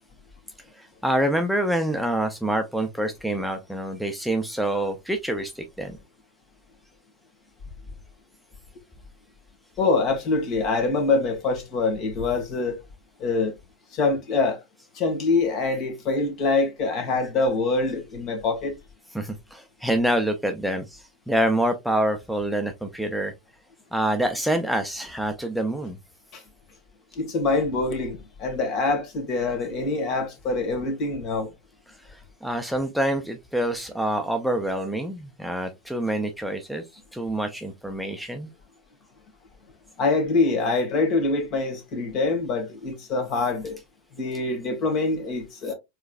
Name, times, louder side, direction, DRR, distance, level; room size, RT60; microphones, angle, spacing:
voice 1, 0.7-6.0 19.1-23.3 23.9-26.0 32.0-36.8 37.1-38.5, right 1 dB, ahead, 0.6 m, -26 dB
voice 2, 9.8-12.8 13.2-13.6 13.9-14.6 14.9-18.7 26.3-26.4 27.2-31.5 40.0-43.8 44.2-45.7, left 3 dB, 45° left, 1.8 m, -24 dB
4.6 x 3.2 x 2.4 m
hypercardioid pair, 95°, 0 cm